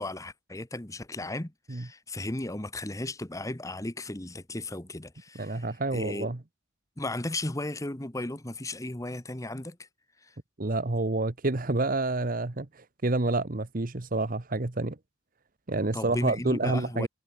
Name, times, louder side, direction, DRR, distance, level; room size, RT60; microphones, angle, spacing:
voice 1, 0.0-5.6 5.9-6.3 7.0-9.8 10.2-10.3 15.9-17.1, left 2 dB, 15° left, 1.2 m, -35 dB
voice 2, 5.3-6.4 10.6-15.0 15.7-17.1, right 2 dB, 45° right, 1.1 m, -28 dB
head